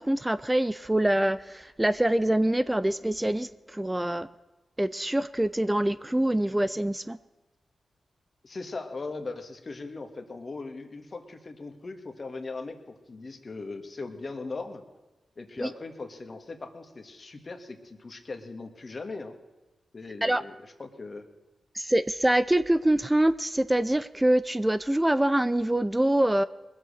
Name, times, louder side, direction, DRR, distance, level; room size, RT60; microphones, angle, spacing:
voice 1, 0.0-4.3 4.8-7.2 15.6-15.7 20.2-20.4 21.7-26.4, right 1 dB, 15° right, 14 dB, 0.5 m, -25 dB
voice 2, 8.4-14.8 15.4-19.4 19.9-21.2, left 3 dB, 50° left, 7 dB, 1.8 m, -39 dB
20.5 x 7.8 x 6.5 m, 1.1 s
supercardioid pair, 40°, 0 cm